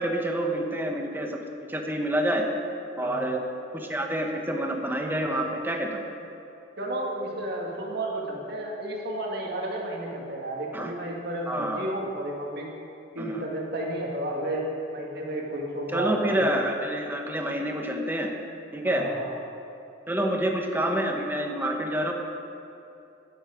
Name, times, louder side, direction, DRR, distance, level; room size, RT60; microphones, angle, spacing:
voice 1, 0.0-1.4 1.7-2.4 3.0-3.4 3.7-6.0 10.7-10.9 11.5-11.8 13.2-13.4 15.9-18.3 18.7-19.1 20.1-22.1, right 1 dB, 10° right, 2 dB, 1.1 m, -27 dB
voice 2, 6.8-12.7 13.2-16.5 18.8-19.3, right 1 dB, 60° right, -1 dB, 2.0 m, -32 dB
13.0 x 9.8 x 5.0 m, 2.7 s
head